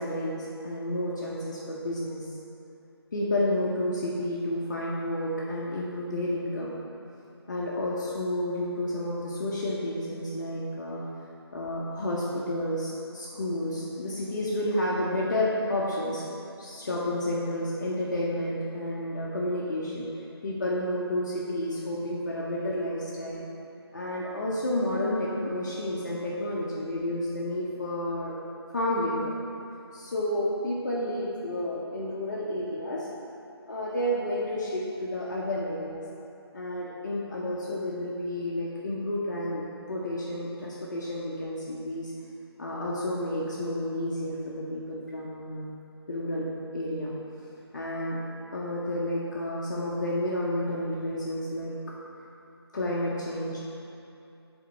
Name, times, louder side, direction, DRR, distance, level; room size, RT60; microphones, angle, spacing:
voice 1, 0.0-2.3 3.1-6.7 7.5-11.0 11.5-16.2 16.6-23.4 23.9-28.3 28.7-29.3 29.9-33.1 33.7-36.0 36.5-42.1 42.6-45.7 46.1-47.1 47.7-48.2 48.5-51.7 52.7-53.6, left 1 dB, 45° left, -5 dB, 0.7 m, -30 dB
7.4 x 3.6 x 4.0 m, 2.7 s
figure-of-eight pair, 165°, 14 cm